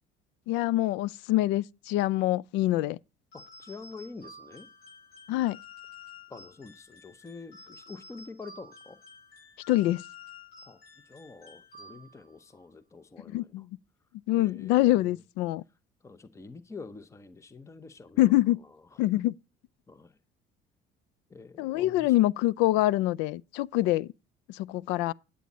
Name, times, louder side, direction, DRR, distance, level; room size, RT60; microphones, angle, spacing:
voice 1, 0.5-3.0 5.3-5.6 9.7-10.0 13.3-13.7 14.3-15.6 18.2-18.6 19.0-19.3 21.6-24.1 24.5-25.1, left 16 dB, 85° left, 0.4 m, -25 dB
sound 1, 3.3-12.4, left 4 dB, 60° left, 7.1 m, -51 dB
voice 2, 3.3-4.7 6.3-9.0 10.6-10.8 11.0-13.7 14.4-15.2 16.0-19.1 19.9-20.2 21.3-22.2, left 4 dB, 15° left, 0.8 m, -47 dB
9.2 x 8.4 x 4.0 m
cardioid pair, 105°, 18 cm